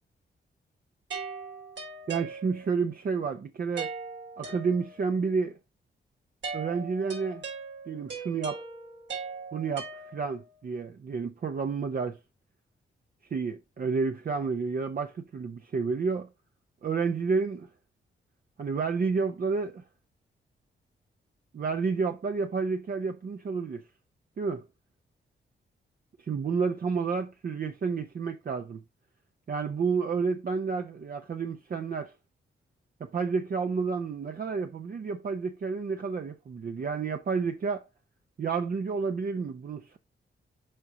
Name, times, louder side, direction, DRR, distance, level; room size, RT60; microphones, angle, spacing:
sound 1, 1.1-2.9 3.8-5.2 6.4-10.5, right 4 dB, 80° right, 4.2 m, -40 dB
voice 1, 2.1-3.9 4.4-5.6 6.5-7.4 7.9-8.6 9.5-12.2 13.3-16.3 16.8-17.7 18.6-19.8 21.5-23.8 24.4-24.6 26.2-28.8 29.5-32.1 33.0-37.8 38.4-40.0, right 5 dB, 50° right, 0.8 m, -30 dB
7.7 x 5.0 x 3.9 m
cardioid pair, 100°, 19 cm